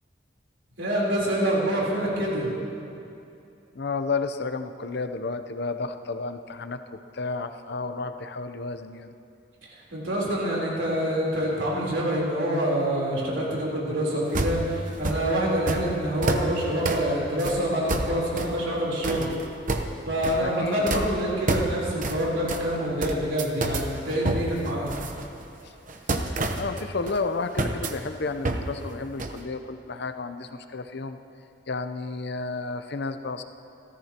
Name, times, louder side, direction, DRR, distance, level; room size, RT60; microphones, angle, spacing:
voice 1, 0.8-2.5 9.9-19.3 20.1-24.9, right 1 dB, 85° right, -5 dB, 3.8 m, -26 dB
voice 2, 3.7-9.1 20.4-21.2 26.6-31.2 31.7-33.4, left 3 dB, 60° left, 8 dB, 0.7 m, -32 dB
sound 1, 14.3-15.2 15.7-15.8 16.2-16.5 16.9-17.1 17.4-17.6 17.9-18.6 19.0-19.9 20.2-20.6 20.9-21.1 21.5-21.7 22.0-22.2 22.5-22.6 23.0-23.9 24.3-25.5 25.9-27.2 27.6-27.9 28.4-28.7 28.9-29.0 29.2-29.4, right 2 dB, 45° right, 1.0 m, -28 dB
28.5 x 14.0 x 3.0 m, 2.6 s
head